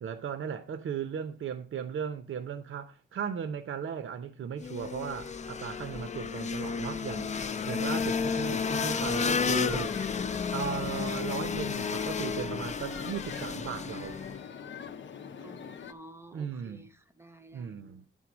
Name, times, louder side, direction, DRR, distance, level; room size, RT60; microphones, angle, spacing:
voice 1, 0.0-7.3 7.6-10.0 10.5-14.2 16.3-16.9 17.5-18.0, right 7 dB, 80° right, 0.7 m, -36 dB
sound 1, 4.6-14.4, left 6 dB, 35° left, 0.4 m, -32 dB
sound 2, 7.3-15.9, left 6 dB, 70° left, 0.7 m, -44 dB
voice 2, 15.3-18.0, right 1 dB, 10° right, 0.6 m, -52 dB
9.8 x 3.8 x 6.0 m
wide cardioid pair, 140°, 20 cm